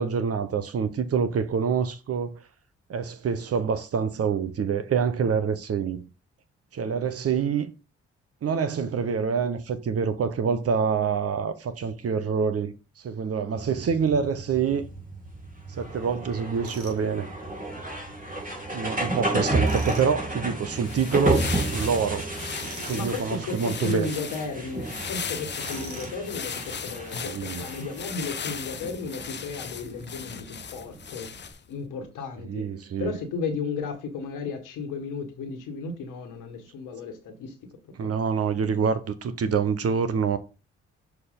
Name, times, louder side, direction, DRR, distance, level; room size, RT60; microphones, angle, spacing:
voice 1, 0.0-2.4 2.9-6.0 6.7-7.7 8.4-12.7 13.0-14.8 15.8-17.3 18.7-22.3 22.8-24.1 27.2-27.6 32.5-33.1 38.0-40.4, right 6 dB, 45° right, 1.0 m, -26 dB
sound 1, 13.6-31.5, right 2 dB, 25° right, 2.8 m, -32 dB
Tools, 16.6-17.0 19.6-20.1 22.6-23.1 25.6-26.2, right 3 dB, 65° right, 1.8 m, -41 dB
sound 2, 20.7-31.7, left 7 dB, 35° left, 0.7 m, -38 dB
voice 2, 22.9-31.3 31.7-32.7 33.0-37.6 37.8-38.1, left 4 dB, 75° left, 1.5 m, -34 dB
6.5 x 4.6 x 3.7 m
hypercardioid pair, 45°, 32 cm